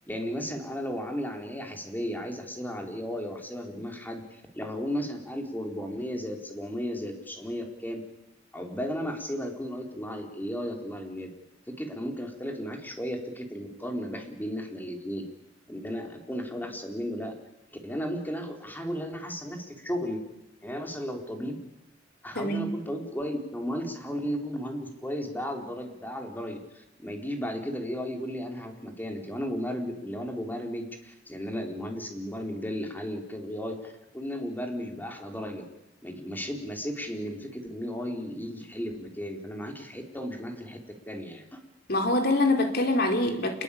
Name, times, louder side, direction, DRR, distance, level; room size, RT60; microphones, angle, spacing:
voice 1, 0.1-8.0 8.5-11.3 11.7-15.2 15.7-17.4 17.7-20.2 20.6-21.6 22.2-35.6 36.0-40.8 41.1-41.6, equal, 10° left, 3 dB, 4.5 m, -34 dB
voice 2, 22.3-22.8 41.9-43.6, left 2 dB, 60° left, 4 dB, 4.5 m, -25 dB
28.0 x 21.5 x 8.8 m, 0.91 s
head